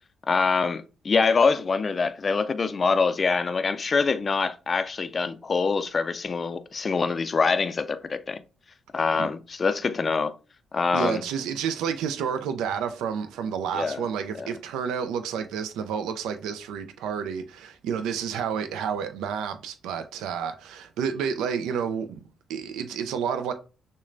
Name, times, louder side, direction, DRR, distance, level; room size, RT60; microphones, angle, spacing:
voice 1, 0.3-8.4 8.9-10.4 10.7-11.2 13.7-14.1 14.4-14.5, left 4 dB, 45° left, 0.3 m, -25 dB
voice 2, 10.9-22.2 22.5-23.5, right 7 dB, 85° right, 0.4 m, -30 dB
6.2 x 2.2 x 2.5 m
supercardioid pair, 60°, 0 cm